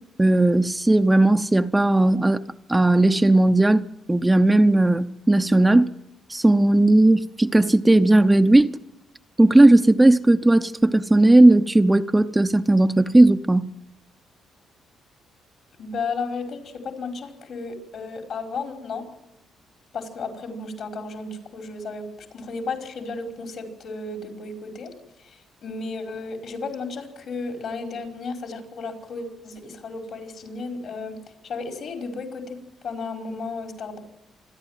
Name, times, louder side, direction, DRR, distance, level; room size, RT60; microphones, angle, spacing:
voice 1, 0.2-2.4 2.7-5.9 6.3-8.8 9.4-13.7, right 2 dB, 10° right, 0.7 m, -17 dB
voice 2, 15.8-19.0 19.9-24.9 25.6-31.2 31.4-32.6 32.8-34.0, left 4 dB, 65° left, 5.0 m, -33 dB
26.5 x 11.0 x 9.1 m
cardioid pair, 90°, 0 cm